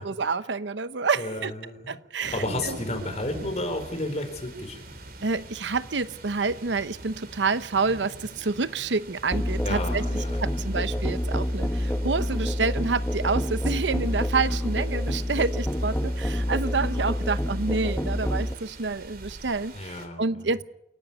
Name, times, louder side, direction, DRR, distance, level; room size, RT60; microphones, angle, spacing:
voice 1, 0.0-1.5 1.9-2.3 2.6-2.8 5.2-20.6, right 4 dB, 85° right, 0.9 m, -28 dB
voice 2, 1.2-2.0 2.3-4.8 9.6-10.6 19.7-20.5, left 1 dB, 40° left, 4.2 m, -32 dB
sound 1, 2.2-20.1, right 2 dB, 55° right, 3.5 m, -44 dB
Musical instrument, 9.3-18.5, equal, 10° left, 1.2 m, -27 dB
28.0 x 11.5 x 9.5 m
head